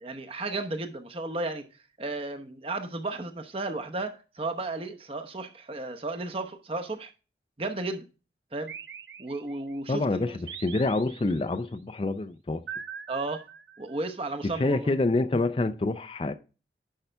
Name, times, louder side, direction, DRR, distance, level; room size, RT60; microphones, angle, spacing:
voice 1, 0.0-1.6 2.0-7.1 7.6-8.1 8.5-8.7 9.2-10.4 13.1-13.5 13.8-14.9, right 2 dB, 30° right, 0.9 m, -34 dB
sound 1, 8.7-9.8 10.5-11.6 12.7-14.1, right 7 dB, 80° right, 0.7 m, -42 dB
voice 2, 9.9-12.6 14.4-16.3, left 2 dB, 30° left, 0.4 m, -27 dB
10.5 x 5.6 x 3.3 m
head